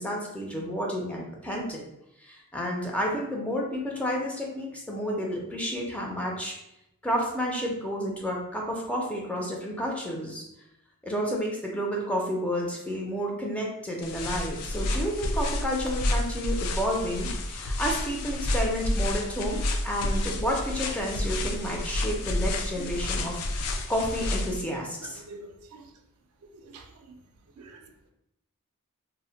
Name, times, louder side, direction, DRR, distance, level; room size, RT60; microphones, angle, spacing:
voice 1, 0.0-1.8 2.2-6.6 7.0-10.4 11.0-23.6 23.9-25.2, equal, 5° left, -2 dB, 0.4 m, -31 dB
sound 1, 14.0-24.6, left 1 dB, 85° left, 0.4 m, -30 dB
voice 2, 25.0-25.9 26.5-27.3 27.6-28.1, right 3 dB, 80° right, 4 dB, 0.4 m, -46 dB
2.1 x 2.1 x 3.7 m, 0.85 s
head